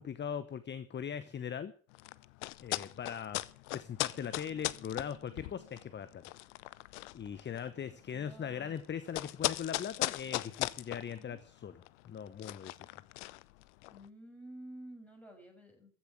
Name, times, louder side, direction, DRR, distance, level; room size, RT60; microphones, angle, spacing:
voice 1, 0.0-1.7 2.6-3.4 3.7-6.2 7.1-11.7 12.0-12.7, left 8 dB, 30° left, 14 dB, 1.0 m, -40 dB
sound 1, 1.9-14.1, left 20 dB, 70° left, 0.7 m, -39 dB
voice 2, 7.8-8.8 11.1-11.4 13.9-15.9, right 1 dB, 5° left, 1 dB, 6.8 m, -51 dB
14.5 x 7.3 x 8.2 m, 0.42 s
figure-of-eight pair, 60°, 37 cm